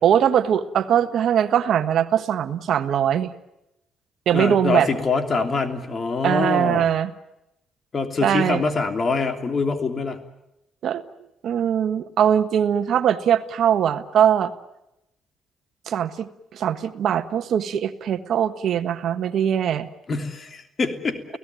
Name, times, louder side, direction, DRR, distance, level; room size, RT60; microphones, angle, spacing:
voice 1, 0.0-3.3 4.3-4.9 6.2-7.1 8.2-8.6 10.8-11.0 11.4-14.5 15.9-19.9, right 9 dB, 70° right, 10 dB, 1.4 m, -21 dB
voice 2, 4.3-6.9 7.9-10.2 20.1-21.4, left 4 dB, 40° left, 7 dB, 3.1 m, -24 dB
30.0 x 17.5 x 9.3 m, 0.87 s
cardioid pair, 90°, 0 cm